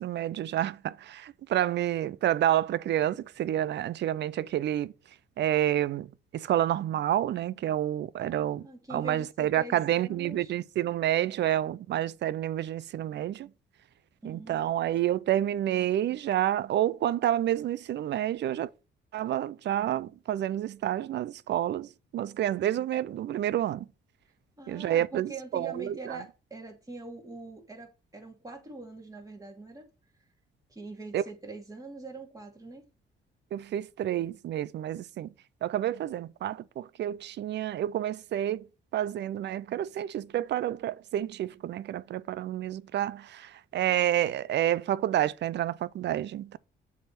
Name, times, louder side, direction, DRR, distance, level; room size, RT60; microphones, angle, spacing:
voice 1, 0.0-13.5 14.2-18.7 19.1-23.9 24.7-26.2 31.1-31.2 33.5-35.3 35.6-46.6, right 12 dB, 60° right, 0.5 m, -29 dB
voice 2, 8.2-10.5 14.2-14.6 24.6-29.9 30.7-32.8, right 3 dB, 15° right, 2.7 m, -43 dB
7.4 x 3.6 x 5.9 m
cardioid pair, 90°, 20 cm